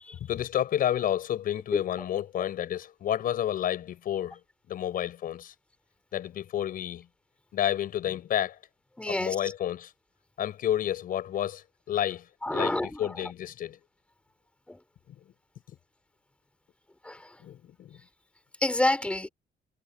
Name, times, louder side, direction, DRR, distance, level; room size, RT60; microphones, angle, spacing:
voice 1, 0.2-4.4 4.7-5.5 6.1-7.1 7.5-8.6 9.1-9.9 10.4-12.2 12.5-13.8 15.1-15.2 15.7-15.8 17.4-18.0, left 11 dB, 65° left, 6.4 m, -30 dB
voice 2, 9.0-9.4 12.4-13.3 14.7-14.8 17.0-17.4 18.6-19.3, left 1 dB, 5° left, 4.2 m, -29 dB
cardioid pair, 150°, 16 cm